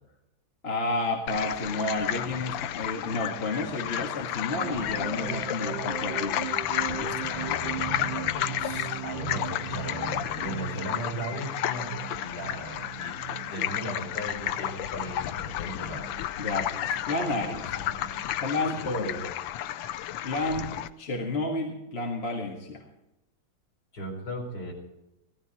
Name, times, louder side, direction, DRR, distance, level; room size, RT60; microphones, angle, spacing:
voice 1, 0.6-6.5 16.4-17.7 18.4-19.3 20.2-20.7 21.0-22.9, left 2 dB, 35° left, 1 dB, 1.9 m, -31 dB
sound 1, 1.3-20.9, left 12 dB, 85° left, 1.4 m, -32 dB
sound 2, 4.5-18.5, right 11 dB, 90° right, 1.5 m, -39 dB
voice 2, 7.1-11.9 12.2-16.1 18.8-18.9 23.9-24.7, equal, 60° left, 0 dB, 4.8 m, -37 dB
16.0 x 14.0 x 4.3 m, 0.92 s
omnidirectional pair, 2.0 m